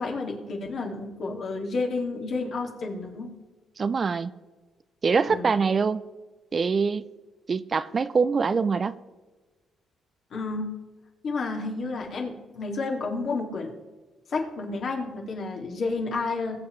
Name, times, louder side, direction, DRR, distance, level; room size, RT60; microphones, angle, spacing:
voice 1, 0.0-3.3 5.3-5.5 10.3-10.7 11.2-13.7 14.3-16.6, left 3 dB, 60° left, 0 dB, 2.3 m, -30 dB
voice 2, 3.8-4.3 5.0-6.0 6.5-7.1 7.5-8.9, right 5 dB, 40° right, 15 dB, 0.4 m, -24 dB
20.5 x 7.7 x 3.2 m, 1.2 s
cardioid pair, 90°, 0 cm